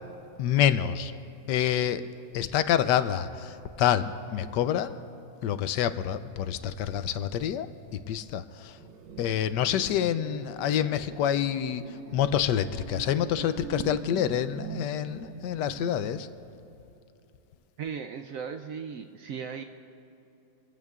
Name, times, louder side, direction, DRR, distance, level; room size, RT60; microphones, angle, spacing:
voice 1, 0.4-1.2 1.5-2.0 2.3-5.0 5.4-7.7 8.1-8.7 9.2-11.8 12.1-16.3, left 10 dB, 75° left, 12 dB, 1.2 m, -27 dB
sound 1, 8.8-16.1, right 7 dB, 85° right, 1.4 m, -42 dB
voice 2, 17.8-19.6, right 6 dB, 70° right, 6 dB, 0.8 m, -37 dB
26.0 x 15.5 x 2.4 m, 2.9 s
omnidirectional pair, 1.9 m